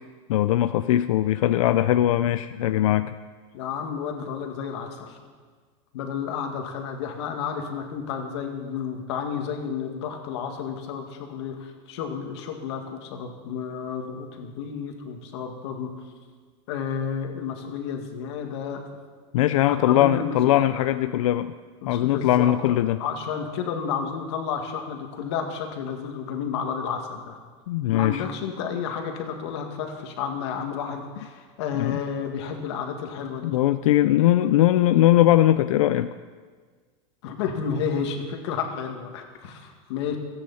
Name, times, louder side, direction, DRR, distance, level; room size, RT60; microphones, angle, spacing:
voice 1, 0.3-3.1 19.3-21.5 21.9-23.0 27.7-28.2 31.7-32.0 33.4-36.1, left 13 dB, 90° left, 12 dB, 0.5 m, -20 dB
voice 2, 3.5-5.2 5.9-15.9 16.7-18.8 19.7-21.2 21.8-27.4 27.9-33.6 37.2-40.2, left 7 dB, 55° left, 3 dB, 2.2 m, -31 dB
29.0 x 9.8 x 4.3 m, 1.5 s
supercardioid pair, 180°, 17 cm